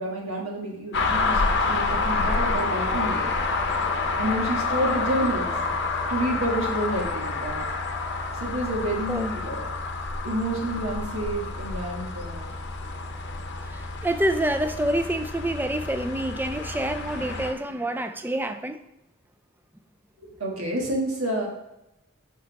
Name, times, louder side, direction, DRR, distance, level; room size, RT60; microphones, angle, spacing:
voice 1, 0.0-3.3 4.2-5.6 6.1-7.6 8.4-9.7 10.2-12.5 20.2-21.5, right 1 dB, 75° right, -2 dB, 1.5 m, -29 dB
sound 1, 0.9-17.5, left 3 dB, 50° left, 0.8 m, -28 dB
voice 2, 13.7-18.8, right 1 dB, 10° right, 8 dB, 0.4 m, -27 dB
6.5 x 5.3 x 4.0 m, 0.89 s
head